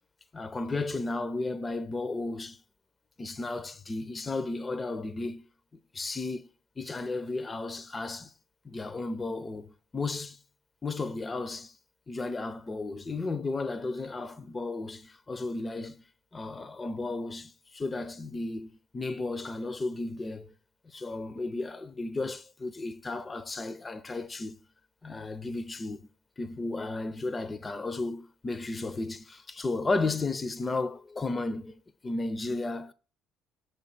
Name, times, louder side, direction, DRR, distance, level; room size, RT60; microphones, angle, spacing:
voice 1, 0.3-2.6 3.2-5.5 5.9-6.5 6.8-8.3 8.6-10.4 10.8-11.8 12.1-16.0 16.3-20.5 20.9-24.6 25.0-26.1 26.4-32.9, left 3 dB, 25° left, 0.6 m, -34 dB
6.9 x 4.7 x 6.3 m
figure-of-eight pair, 50°, 0 cm